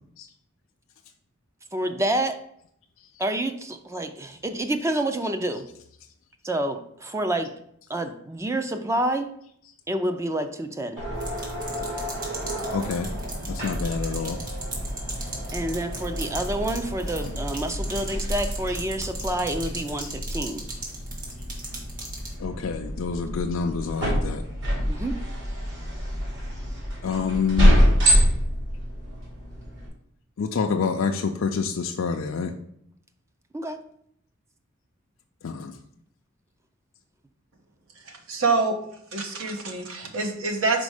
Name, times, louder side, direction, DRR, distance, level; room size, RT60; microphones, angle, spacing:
voice 1, 1.7-2.4 3.2-5.7 6.4-7.5 7.9-9.3 9.9-11.0 15.5-20.6 24.9-25.2 33.5-33.8, right 1 dB, 15° right, 7 dB, 0.4 m, -28 dB
sound 1, 11.0-29.9, equal, 65° right, 2.6 m, -27 dB
sound 2, 11.2-22.3, right 2 dB, 40° right, 1.8 m, -38 dB
voice 2, 12.7-13.1 13.5-14.4 20.0-20.1 22.4-24.4 27.0-27.8 30.4-32.5 35.4-35.7, left 5 dB, 70° left, 3 dB, 0.4 m, -27 dB
voice 3, 37.9-38.8 39.1-40.8, right 3 dB, 85° right, 4 dB, 1.1 m, -26 dB
5.2 x 4.2 x 4.8 m, 0.70 s
head